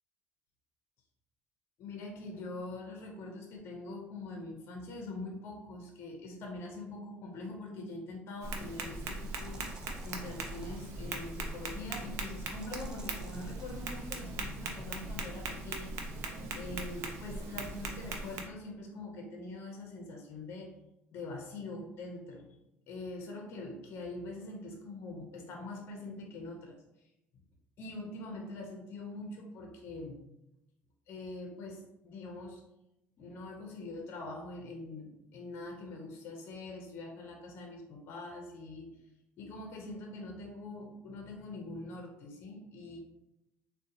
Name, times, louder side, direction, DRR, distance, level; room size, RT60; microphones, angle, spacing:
voice 1, 1.8-15.9 16.5-20.7 21.1-22.5 22.9-27.1 27.8-30.2 31.1-32.6 33.2-38.9 39.4-43.0, left 2 dB, 55° left, 1 dB, 0.6 m, -44 dB
sound 1, 7.9-8.0 9.2-10.8 12.5-13.8, right 2 dB, 15° right, 0.5 m, -55 dB
Tap, 8.4-18.4, right 3 dB, 70° right, 0.5 m, -40 dB
3.7 x 2.1 x 2.7 m, 0.88 s
cardioid pair, 105°, 5 cm